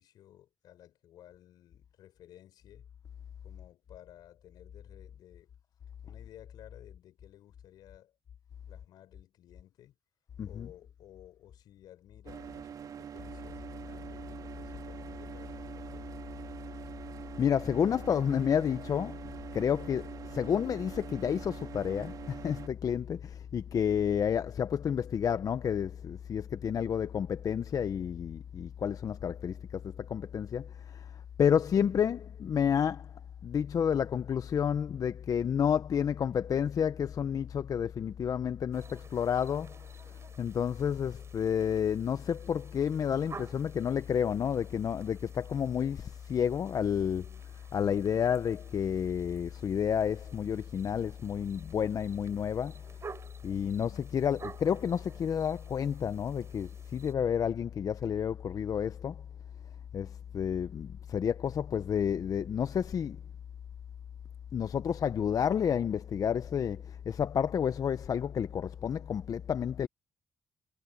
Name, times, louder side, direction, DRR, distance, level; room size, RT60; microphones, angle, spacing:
voice 1, 0.0-2.9 3.4-5.5 6.0-8.2 8.7-10.0 10.4-16.1, left 12 dB, 80° left, 4.6 m, -56 dB
sound 1, 12.3-22.7, right 8 dB, 65° right, 3.7 m, -45 dB
voice 2, 17.4-19.2 19.5-31.1 31.4-33.1 33.4-39.8 40.4-47.3 47.7-52.8 53.4-59.2 59.9-63.2 64.5-69.9, left 8 dB, 60° left, 0.9 m, -30 dB
sound 2, 38.7-57.1, right 5 dB, 40° right, 5.3 m, -53 dB
supercardioid pair, 55°, 7 cm